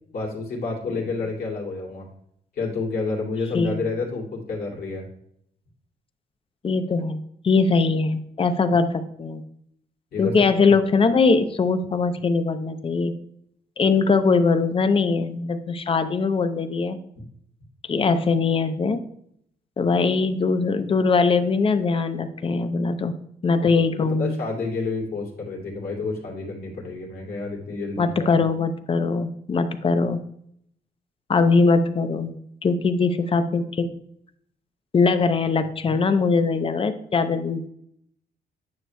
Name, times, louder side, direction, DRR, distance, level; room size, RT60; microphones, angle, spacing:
voice 1, 0.1-2.1 2.5-5.1 10.1-10.7 23.8-28.4, left 3 dB, 65° left, -3 dB, 2.4 m, -30 dB
voice 2, 6.6-7.2 7.4-9.4 10.2-13.1 13.8-17.0 17.9-19.0 19.8-23.1 23.4-24.4 28.0-30.2 31.3-32.3 32.6-33.9 34.9-37.7, left 4 dB, 35° left, 10 dB, 0.6 m, -21 dB
9.6 x 6.2 x 2.2 m, 0.71 s
cardioid pair, 100°, 17 cm